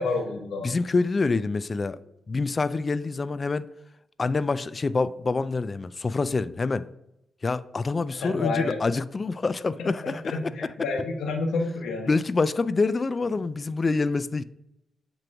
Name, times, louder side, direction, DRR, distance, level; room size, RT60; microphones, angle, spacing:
voice 1, 0.0-0.7 8.1-8.8 9.8-12.1 13.3-13.4, left 3 dB, 75° left, 1.1 m, -30 dB
voice 2, 0.6-2.0 2.3-3.7 4.2-6.9 7.4-10.4 12.1-14.4, left 3 dB, 40° left, 0.3 m, -26 dB
7.6 x 3.0 x 4.7 m
supercardioid pair, 45°, 0 cm